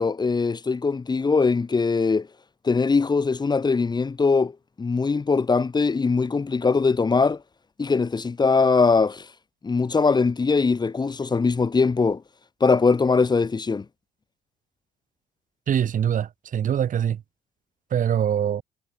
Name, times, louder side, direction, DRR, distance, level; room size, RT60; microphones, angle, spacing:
voice 1, 0.0-2.3 2.6-7.4 7.8-9.3 9.6-12.2 12.6-13.8, left 4 dB, 25° left, 6.6 m, -21 dB
voice 2, 15.7-17.2 17.9-18.6, right 9 dB, 50° right, 7.9 m, -23 dB
cardioid pair, 110°, 17 cm